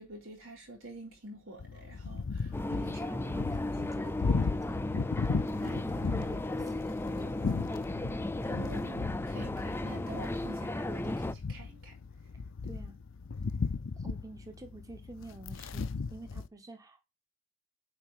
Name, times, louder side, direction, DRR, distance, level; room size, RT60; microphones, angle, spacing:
voice 1, 0.0-3.2 8.5-11.9, right 2 dB, 80° right, 3.8 m, -48 dB
sound 1, 1.6-16.5, left 4 dB, 70° left, 0.5 m, -36 dB
sound 2, 2.5-11.3, left 1 dB, 10° left, 0.4 m, -35 dB
voice 2, 2.7-5.0 5.6-8.0 12.6-13.0 14.0-17.0, right 2 dB, 15° right, 0.9 m, -48 dB
7.9 x 4.9 x 7.4 m
head